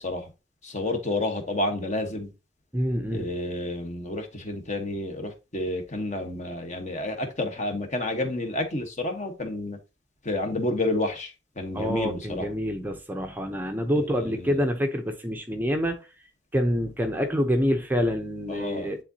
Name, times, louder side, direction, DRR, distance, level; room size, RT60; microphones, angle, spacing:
voice 1, 0.6-2.3 3.1-9.8 10.2-12.5 14.0-14.6 18.5-18.9, left 2 dB, 35° left, 1.2 m, -30 dB
voice 2, 2.7-3.3 11.7-16.0 16.5-19.0, equal, 10° right, 0.6 m, -26 dB
10.0 x 3.7 x 2.7 m
head